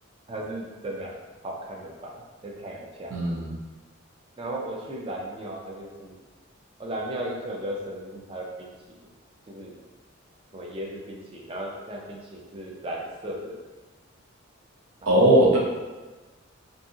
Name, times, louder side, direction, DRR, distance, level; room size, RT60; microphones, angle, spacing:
voice 1, 0.3-1.1 1.4-3.1 4.4-6.2 6.8-8.7 9.5-9.8 10.5-13.5 15.0-15.2, right 1 dB, 25° right, -2 dB, 0.3 m, -36 dB
voice 2, 3.1-3.6 15.1-15.6, right 1 dB, 85° right, -4 dB, 0.7 m, -19 dB
2.7 x 2.6 x 2.4 m, 1.2 s
head